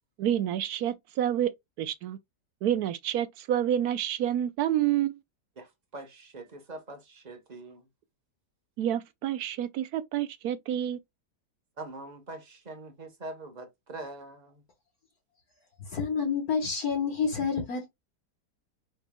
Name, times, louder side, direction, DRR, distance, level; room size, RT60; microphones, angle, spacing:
voice 1, 0.2-1.5 1.8-2.2 2.6-5.2 8.8-11.0, right 11 dB, 75° right, 1.0 m, -28 dB
voice 2, 5.6-7.9 11.8-14.6, right 2 dB, 30° right, 1.1 m, -43 dB
voice 3, 15.9-17.9, left 5 dB, 65° left, 1.7 m, -28 dB
5.3 x 4.4 x 2.2 m
omnidirectional pair, 1.8 m